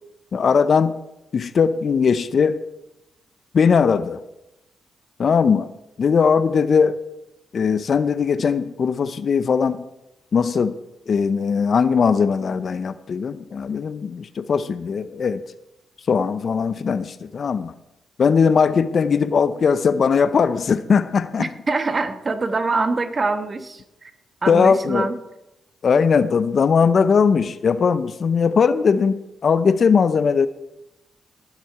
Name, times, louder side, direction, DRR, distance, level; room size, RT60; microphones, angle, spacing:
voice 1, 0.3-1.0 1.3-2.6 3.5-4.2 5.2-5.7 6.0-7.0 7.5-9.8 10.3-10.8 11.1-15.4 16.1-17.7 18.2-21.5 24.5-25.1 25.8-30.5, left 6 dB, 60° left, 0.6 m, -19 dB
voice 2, 21.4-24.1 24.4-25.2, right 3 dB, 40° right, 1.4 m, -24 dB
19.0 x 7.5 x 4.8 m
supercardioid pair, 55°, 0 cm